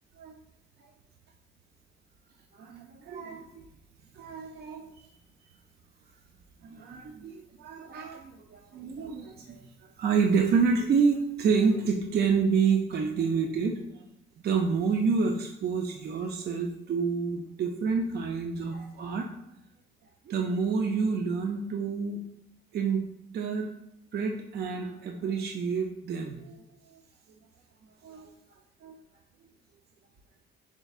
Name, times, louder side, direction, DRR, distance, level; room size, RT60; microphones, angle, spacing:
voice 1, 2.5-3.6 4.1-5.0 6.6-9.7 10.0-13.8 14.4-19.3 20.3-22.2 22.7-23.0 23.3-23.7 24.1-26.6 26.9-27.0 28.0-28.3 28.8-29.0, right 5 dB, 55° right, 2 dB, 0.5 m, -28 dB
5.0 x 3.5 x 2.4 m, 0.80 s
cardioid pair, 90°, 20 cm